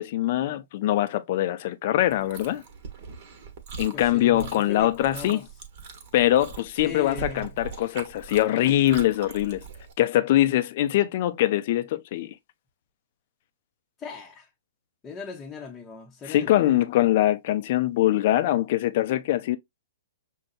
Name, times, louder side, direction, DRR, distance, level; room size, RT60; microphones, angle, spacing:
voice 1, 0.0-2.6 3.8-5.4 6.1-9.6 10.0-12.3 16.3-19.6, left 14 dB, 50° left, 0.5 m, -23 dB
Chewing mastication, 2.1-9.9, right 6 dB, 45° right, 1.1 m, -41 dB
voice 2, 3.9-5.4 6.8-7.5 14.0-14.5 15.0-16.8, left 5 dB, 20° left, 0.8 m, -39 dB
6.3 x 2.2 x 2.4 m
figure-of-eight pair, 115°, 0 cm